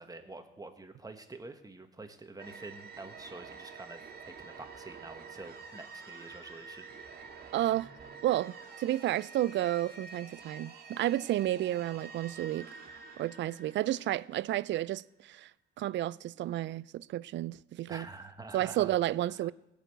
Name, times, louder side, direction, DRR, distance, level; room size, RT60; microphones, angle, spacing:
voice 1, 0.0-6.9 17.9-18.9 19.4-19.5, right 2 dB, 20° right, 1.5 m, -47 dB
sound 1, 2.4-14.9, right 5 dB, 50° right, 2.0 m, -49 dB
voice 2, 7.5-7.9 8.2-12.7 13.2-15.5 15.8-18.1 18.5-19.5, right 14 dB, 65° right, 0.4 m, -31 dB
17.5 x 6.8 x 8.1 m
cardioid pair, 90°, 20 cm